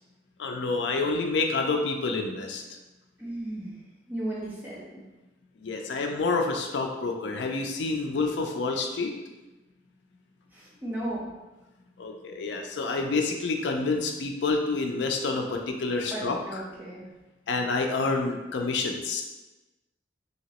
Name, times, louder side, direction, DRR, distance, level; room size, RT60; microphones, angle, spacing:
voice 1, 0.4-2.6 5.6-9.1 12.0-16.6 17.5-19.2, left 3 dB, 75° left, 3 dB, 0.4 m, -28 dB
voice 2, 3.2-3.7 4.1-5.0 10.5-11.3 16.1-17.0, right 1 dB, 10° right, -6 dB, 0.8 m, -35 dB
2.9 x 2.8 x 2.9 m, 1.1 s
head